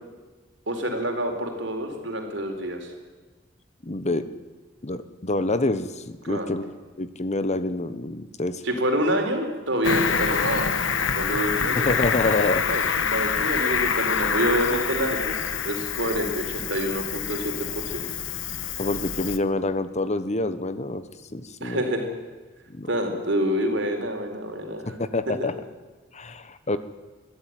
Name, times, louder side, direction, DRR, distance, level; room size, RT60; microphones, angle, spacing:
voice 1, 0.7-2.9 6.3-6.5 8.6-10.7 11.2-11.9 12.5-18.0 21.6-22.0 22.9-24.9, right 1 dB, 70° right, 4 dB, 4.2 m, -27 dB
voice 2, 3.8-4.3 4.8-6.6 7.0-8.6 11.8-12.6 18.8-21.0 21.3-21.8 22.7-22.9 25.0-25.5 26.1-26.8, left 2 dB, 35° left, 12 dB, 1.1 m, -27 dB
Cricket, 9.8-19.4, left 6 dB, 90° left, 1.3 m, -26 dB
22.0 x 14.5 x 9.3 m, 1.3 s
head